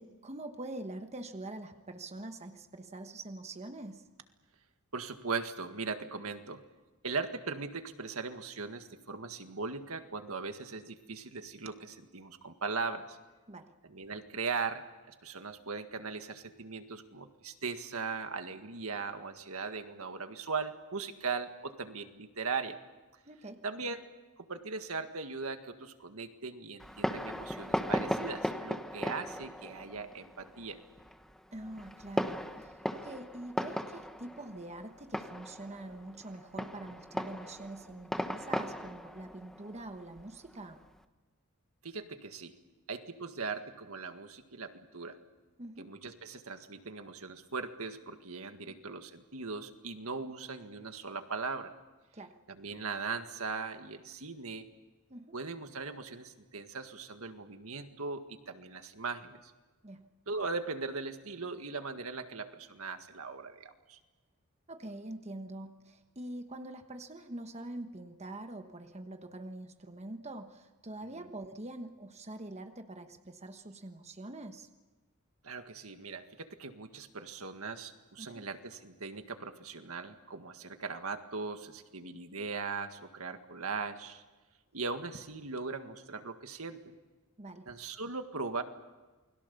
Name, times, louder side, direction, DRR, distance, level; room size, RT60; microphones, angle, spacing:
voice 1, 0.0-4.1 13.5-13.7 23.3-23.6 31.5-40.8 45.6-45.9 48.7-48.8 52.1-52.4 55.1-55.4 59.8-60.1 64.7-74.7 78.2-78.5 87.4-87.7, right 2 dB, 30° right, 6 dB, 1.3 m, -45 dB
voice 2, 4.9-6.6 7.0-13.2 13.9-22.8 23.6-24.0 24.4-30.8 41.8-42.5 42.9-45.2 45.8-51.7 52.5-54.7 55.3-59.5 60.3-64.0 71.1-71.3 75.4-84.2 84.7-86.9 87.7-88.6, right 4 dB, 75° right, 7 dB, 1.8 m, -39 dB
Fireworks, 26.8-41.0, equal, ahead, 1.2 m, -38 dB
29.0 x 21.5 x 7.0 m, 1.2 s
head